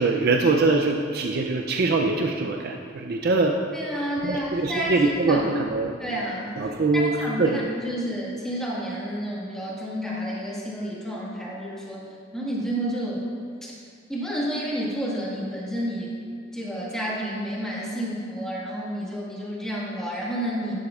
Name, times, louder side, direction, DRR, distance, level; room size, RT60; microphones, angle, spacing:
voice 1, 0.0-3.6 4.2-5.9 6.6-7.1 7.4-7.6, right 3 dB, 50° right, 2 dB, 0.4 m, -23 dB
voice 2, 3.7-5.5 6.0-6.6 6.9-12.0 12.3-13.2 13.6-13.7 14.1-16.2 16.5-20.7, equal, 5° left, -6 dB, 1.6 m, -30 dB
11.5 x 9.3 x 2.4 m, 2.2 s
head